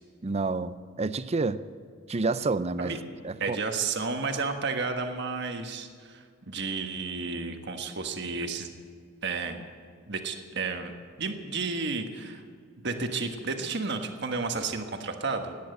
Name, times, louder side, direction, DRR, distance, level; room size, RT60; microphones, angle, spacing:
voice 1, 0.2-1.6 2.1-2.9 3.2-3.6, right 3 dB, 30° right, 14 dB, 0.5 m, -29 dB
voice 2, 3.4-8.7 9.2-9.6 10.1-12.4 12.8-15.6, right 4 dB, 60° right, 5 dB, 1.4 m, -32 dB
17.5 x 10.5 x 7.8 m, 2.1 s
head